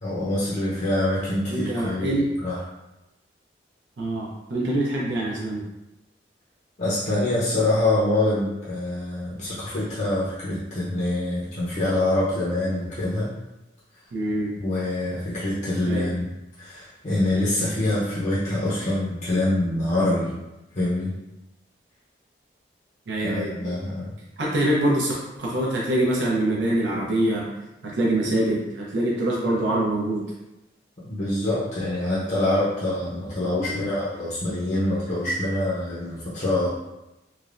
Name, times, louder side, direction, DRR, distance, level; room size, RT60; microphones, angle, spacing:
voice 1, 0.0-2.1 2.4-2.6 6.8-13.3 14.6-16.3 16.6-20.4 20.7-21.1 23.2-24.1 31.0-36.7, left 1 dB, 45° left, -9 dB, 0.6 m, -25 dB
voice 2, 1.5-2.3 4.0-5.6 14.1-14.5 15.9-16.1 23.1-23.7 24.4-27.4 27.8-30.2 33.7-34.0, right 1 dB, 90° right, -5 dB, 0.5 m, -24 dB
3.2 x 2.0 x 2.4 m, 0.97 s
head